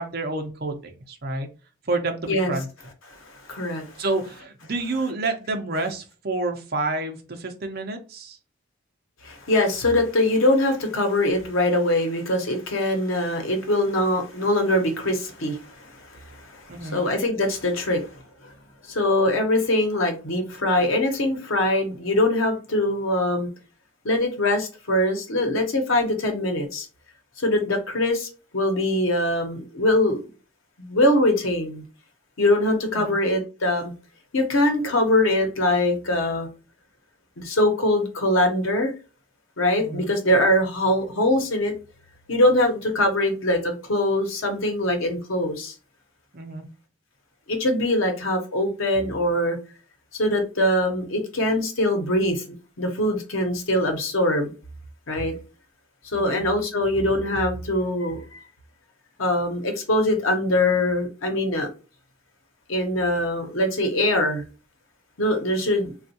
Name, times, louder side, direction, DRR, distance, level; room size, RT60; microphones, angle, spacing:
voice 1, 0.0-1.5 1.8-2.7 4.0-8.4 16.7-17.0 32.9-33.2 39.7-40.1 46.3-46.6 56.1-56.4, right 2 dB, 50° right, 0.6 m, -29 dB
voice 2, 3.1-4.0 9.2-18.1 18.9-23.5 24.0-26.9 27.4-28.3 28.5-30.2 30.8-31.8 32.4-33.9 34.3-36.5 37.4-38.9 39.6-41.7 42.3-45.7 47.5-49.6 50.1-52.4 52.8-54.5 55.1-55.3 56.0-58.4 59.2-61.7 62.7-64.4 65.2-65.9, left 1 dB, 90° left, 0.9 m, -23 dB
3.4 x 2.4 x 2.7 m
head